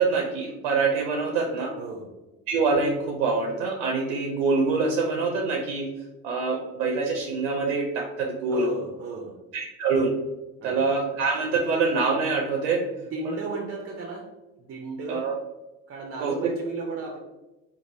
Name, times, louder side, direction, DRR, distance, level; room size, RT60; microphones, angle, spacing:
voice 1, 0.0-1.7 2.5-5.9 6.2-8.7 9.5-10.1 10.6-12.8 13.3-13.4 15.1-15.3 16.2-16.3, right 4 dB, 85° right, 0 dB, 0.6 m, -25 dB
voice 2, 1.7-2.2 8.5-9.5 10.6-10.9 13.0-14.3 14.6-15.3 15.9-17.2, right 4 dB, 40° right, 0 dB, 0.6 m, -34 dB
3.0 x 2.6 x 2.6 m, 1.0 s
hypercardioid pair, 70°, 36 cm